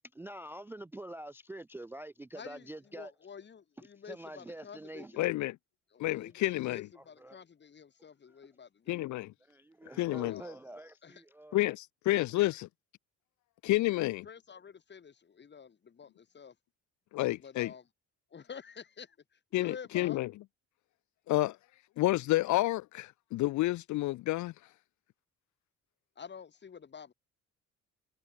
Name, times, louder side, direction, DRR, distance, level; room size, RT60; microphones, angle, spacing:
voice 1, 0.1-3.1 3.8-5.3 7.0-7.4 8.3-8.5 8.9-9.1 9.4-11.6, right 1 dB, 10° right, 0.3 m, -46 dB
voice 2, 2.3-5.3 5.9-9.0 10.1-10.6 11.0-11.2 13.9-16.5 17.4-17.8 18.3-19.1 19.5-20.2 26.2-27.1, left 6 dB, 35° left, 1.3 m, -49 dB
voice 3, 5.2-5.6 6.0-6.9 8.9-9.3 10.0-10.4 11.5-12.7 13.6-14.3 17.1-17.7 19.5-20.3 21.3-21.6 22.0-24.5, left 17 dB, 70° left, 0.5 m, -30 dB
cardioid pair, 90°, 30 cm